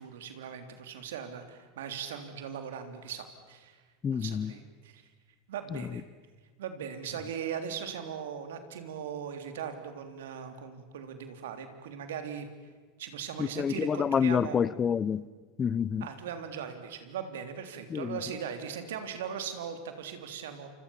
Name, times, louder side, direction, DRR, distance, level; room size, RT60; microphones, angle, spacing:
voice 1, 0.0-3.8 4.1-5.1 5.5-6.0 6.6-12.5 13.0-14.6 16.0-20.7, right 7 dB, 75° right, 3.4 m, -39 dB
voice 2, 4.0-4.5 5.7-5.8 13.4-15.3 15.6-16.1 17.9-18.2, left 7 dB, 30° left, 0.8 m, -28 dB
29.0 x 26.5 x 7.3 m
hypercardioid pair, 90°, 0 cm